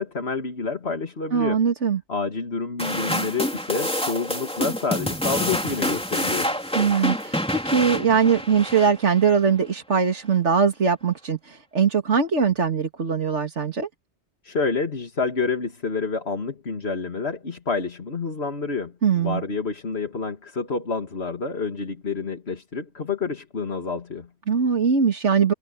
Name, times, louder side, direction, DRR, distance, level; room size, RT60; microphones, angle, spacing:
voice 1, 0.0-1.6 2.1-6.5 14.4-24.3, left 4 dB, 65° left, 2.5 m, -28 dB
voice 2, 1.3-2.0 6.7-13.9 19.0-19.4 24.5-25.5, right 6 dB, 90° right, 2.5 m, -21 dB
sound 1, 2.8-9.3, equal, 5° left, 3.2 m, -27 dB
omnidirectional pair, 1.2 m